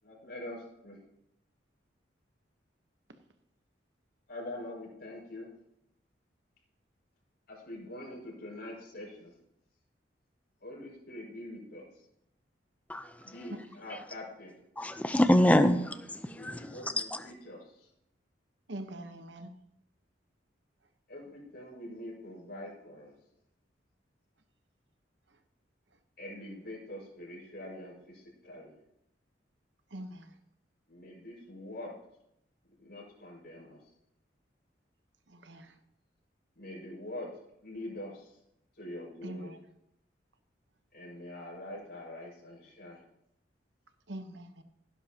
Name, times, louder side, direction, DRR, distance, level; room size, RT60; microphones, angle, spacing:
voice 1, 0.0-1.0 4.3-5.5 7.5-9.3 10.6-11.9 13.2-14.6 16.3-17.9 21.1-23.1 26.2-28.7 30.9-31.9 32.8-33.8 36.6-37.3 37.6-38.4 38.8-39.6 40.9-43.1, left 1 dB, 60° left, 5.5 m, -44 dB
voice 2, 14.8-16.0 16.4-17.2, left 1 dB, 10° left, 0.6 m, -25 dB
voice 3, 18.7-19.5 29.9-30.2 35.5-35.6 39.2-39.4 44.1-44.6, right 1 dB, 75° right, 1.1 m, -42 dB
16.5 x 10.5 x 2.9 m
head